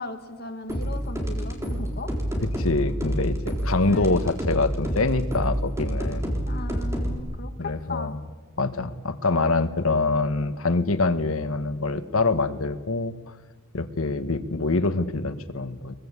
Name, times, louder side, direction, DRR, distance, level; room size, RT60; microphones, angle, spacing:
voice 1, 0.0-2.1 3.8-4.2 6.5-8.1, left 2 dB, 45° left, 6 dB, 2.1 m, -37 dB
sound 1, 0.7-7.2, equal, 15° right, 3.9 m, -28 dB
voice 2, 2.5-6.4 7.6-8.2 8.6-13.1 13.7-15.9, left 3 dB, 70° left, 10 dB, 1.5 m, -25 dB
23.0 x 21.5 x 8.4 m, 1.3 s
head